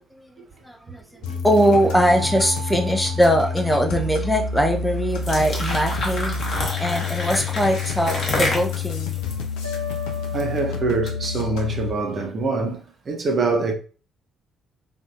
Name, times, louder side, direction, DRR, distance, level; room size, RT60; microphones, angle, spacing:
voice 1, 0.1-6.4 6.8-9.2, equal, 5° left, 0.6 m, -21 dB
sound 1, 1.2-11.9, left 4 dB, 65° left, 0.4 m, -28 dB
sound 2, 1.9-4.3 5.7-6.7 7.7-9.0 9.6-12.0, equal, 85° right, 0.3 m, -38 dB
sound 3, 5.1-10.4, left 2 dB, 40° left, 1.1 m, -29 dB
voice 2, 10.3-13.7, right 3 dB, 40° right, 0.7 m, -24 dB
3.4 x 2.6 x 2.6 m
figure-of-eight pair, 45°, 0 cm